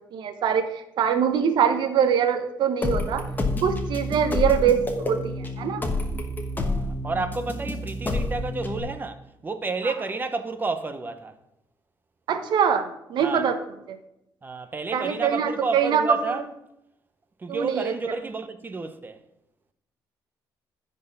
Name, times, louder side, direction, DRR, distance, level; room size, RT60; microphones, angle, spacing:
voice 1, 0.1-0.7 1.0-3.2 3.6-5.8 12.3-13.6 13.9-14.0 14.9-16.4 17.5-17.9, right 8 dB, 70° right, 0.9 m, -23 dB
sound 1, 2.8-8.8, left 2 dB, 25° left, 1.1 m, -28 dB
voice 2, 6.6-11.4 13.2-13.5 14.4-16.5 17.4-19.2, right 3 dB, 25° right, 0.8 m, -31 dB
10.0 x 4.4 x 5.8 m
cardioid pair, 110°, 8 cm